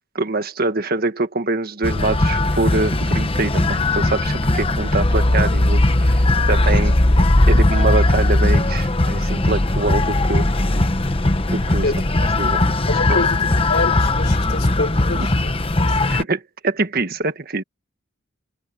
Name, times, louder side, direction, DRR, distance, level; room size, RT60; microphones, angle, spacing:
voice 1, 0.1-7.0 7.5-10.5 11.5-11.9 12.4-12.6 13.1-13.2 15.1-15.2 16.1-17.6, right 3 dB, 50° right, 1.6 m, -24 dB
sound 1, 1.8-16.2, left 2 dB, 30° left, 1.0 m, -18 dB
voice 2, 11.8-12.3 12.9-15.5 15.9-16.0, left 2 dB, 55° left, 5.1 m, -26 dB
head